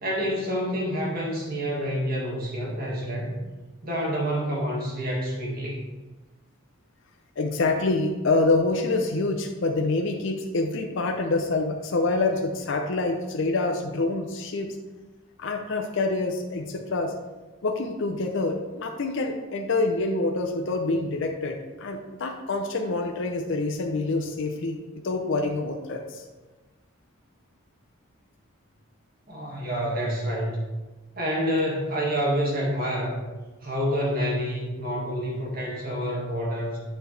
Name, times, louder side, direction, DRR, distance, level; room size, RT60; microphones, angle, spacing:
voice 1, 0.0-3.3 3.8-5.8 29.3-30.6 31.2-33.2 33.6-36.8, equal, 40° right, -3 dB, 1.8 m, -28 dB
voice 2, 7.4-14.8 15.4-17.1 17.6-24.8 25.0-26.2, left 3 dB, 55° left, 3 dB, 0.5 m, -26 dB
8.6 x 4.8 x 3.2 m, 1.2 s
head